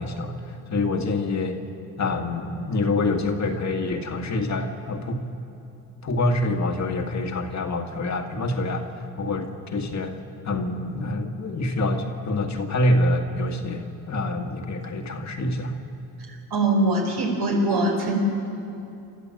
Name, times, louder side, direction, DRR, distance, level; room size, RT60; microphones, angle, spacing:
voice 1, 0.0-1.6 2.0-5.2 6.0-8.9 9.2-10.1 10.4-15.8, left 2 dB, 45° left, 4 dB, 1.9 m, -26 dB
voice 2, 16.5-18.2, right 2 dB, 65° right, 2 dB, 5.0 m, -22 dB
29.0 x 13.5 x 8.0 m, 2.7 s
cardioid pair, 115°, 41 cm